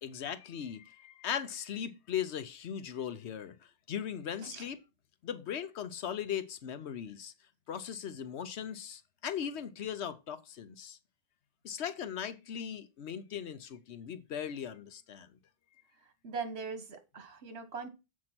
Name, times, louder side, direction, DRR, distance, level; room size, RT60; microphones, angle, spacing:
voice 1, 0.0-3.6 3.9-4.8 5.2-7.3 7.7-11.0 11.6-15.3, left 8 dB, 90° left, 1.1 m, -38 dB
voice 2, 16.2-17.9, right 5 dB, 70° right, 1.5 m, -40 dB
7.3 x 4.6 x 5.9 m
omnidirectional pair, 1.1 m